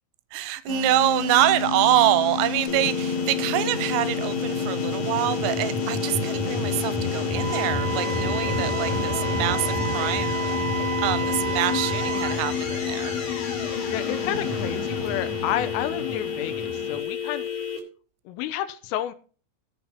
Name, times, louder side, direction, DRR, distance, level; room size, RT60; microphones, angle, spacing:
voice 1, 0.3-10.6 11.0-13.1, right 14 dB, 85° right, 3.2 m, -25 dB
sound 1, 0.7-17.0, left 3 dB, 40° left, 2.9 m, -29 dB
sound 2, 2.7-17.8, left 7 dB, 65° left, 4.1 m, -32 dB
Wind instrument woodwind instrument, 7.3-12.4, right 6 dB, 60° right, 1.4 m, -31 dB
voice 2, 13.8-17.5 18.3-19.1, left 12 dB, 80° left, 3.4 m, -30 dB
16.5 x 5.8 x 4.3 m
omnidirectional pair, 6.0 m